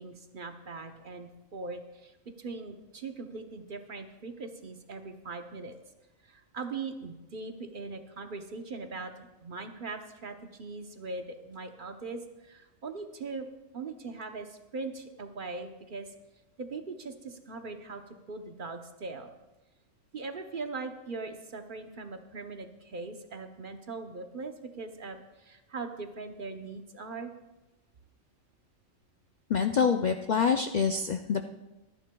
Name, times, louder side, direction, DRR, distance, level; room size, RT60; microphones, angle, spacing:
voice 1, 0.0-5.8 6.2-13.5 13.7-16.1 16.6-18.0 18.3-19.3 20.1-27.3, right 3 dB, 45° right, 6 dB, 0.9 m, -40 dB
voice 2, 29.5-31.5, left 6 dB, 90° left, 6 dB, 0.4 m, -26 dB
23.5 x 10.0 x 2.3 m, 1.0 s
omnidirectional pair, 1.4 m